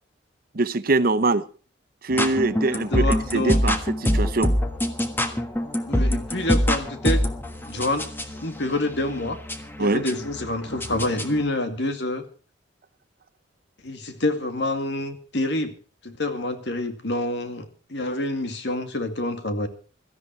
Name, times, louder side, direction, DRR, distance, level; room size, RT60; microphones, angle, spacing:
voice 1, 0.5-1.5 2.0-3.1 3.3-4.5 9.8-10.0, right 2 dB, 50° right, 0.8 m, -23 dB
sound 1, 2.1-11.4, equal, 10° left, 1.4 m, -25 dB
voice 2, 2.6-3.6 5.8-7.2 7.7-8.1 8.4-9.4 9.8-12.2 13.8-15.7 16.0-19.7, left 1 dB, 65° left, 2.2 m, -27 dB
16.5 x 13.5 x 4.5 m
head